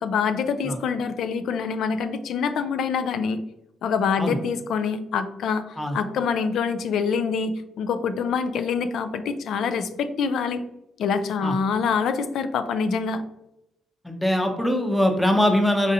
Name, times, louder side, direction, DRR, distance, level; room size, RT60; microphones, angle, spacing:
voice 1, 0.0-3.4 3.8-10.6 11.0-13.2, left 6 dB, 75° left, 10 dB, 0.3 m, -25 dB
voice 2, 14.0-15.9, left 1 dB, 5° left, 3 dB, 0.6 m, -22 dB
4.2 x 2.6 x 2.6 m, 0.86 s
cardioid pair, 90°, 0 cm